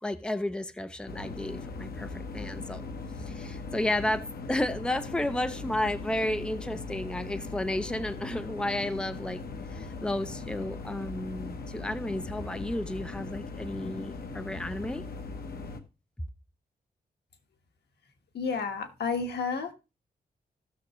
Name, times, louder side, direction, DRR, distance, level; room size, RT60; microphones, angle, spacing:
voice 1, 0.0-2.9 3.2-4.2 4.5-9.4 9.7-15.0, left 1 dB, 5° left, 11 dB, 0.6 m, -32 dB
sound 1, 1.1-15.8, left 3 dB, 70° left, 1.1 m, -39 dB
voice 2, 18.3-19.7, left 5 dB, 90° left, 6 dB, 1.4 m, -31 dB
15.5 x 6.5 x 3.0 m, 0.28 s
wide cardioid pair, 140°, 17 cm